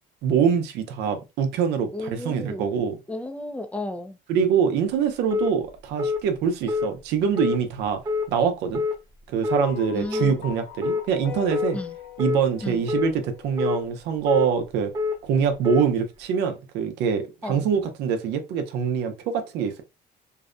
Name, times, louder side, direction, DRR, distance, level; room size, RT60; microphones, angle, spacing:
voice 1, 0.2-3.0 4.3-8.0 8.3-8.8 9.3-11.8 12.2-14.9 15.2-19.8, right 7 dB, 85° right, 0.6 m, -24 dB
voice 2, 1.9-2.7 3.1-4.2 9.9-10.3 11.7-12.0 12.6-12.8 17.4-17.6, left 1 dB, 10° left, 0.4 m, -33 dB
sound 1, 5.3-5.5 6.0-6.2 6.7-6.9 7.3-7.6 8.1-8.3 8.7-9.0 9.4-9.6 10.1-10.3 10.8-11.0 11.5-11.7 12.2-12.4 12.9-13.1 13.6-13.8 14.3-14.5 14.9-15.2 15.6-15.9, left 4 dB, 25° right, 0.9 m, -25 dB
sound 2, 9.6-14.1, left 11 dB, 60° left, 0.8 m, -40 dB
2.6 x 2.1 x 2.4 m
cardioid pair, 110°, 17 cm